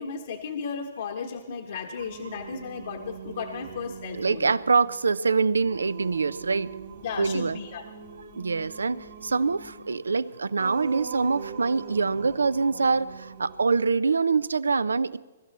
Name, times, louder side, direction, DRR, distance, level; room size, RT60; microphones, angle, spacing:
voice 1, 0.0-4.5 7.0-7.8, left 5 dB, 65° left, 2 dB, 1.4 m, -35 dB
Singing, 2.0-13.6, right 7 dB, 65° right, 2.0 m, -43 dB
voice 2, 4.1-6.7 7.2-7.6 8.4-15.2, right 4 dB, 90° right, 19 dB, 0.5 m, -25 dB
22.5 x 12.5 x 4.2 m, 1.2 s
hypercardioid pair, 130°, 0 cm